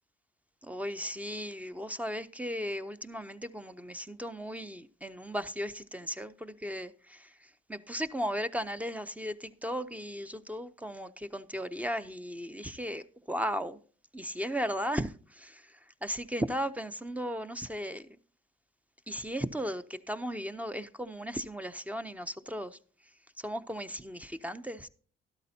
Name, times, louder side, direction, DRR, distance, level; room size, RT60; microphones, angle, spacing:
voice 1, 0.6-13.8 14.1-18.1 19.1-22.8 23.4-24.9, equal, 5° right, 0.6 m, -36 dB
13.0 x 12.0 x 2.7 m
cardioid pair, 90°, 20 cm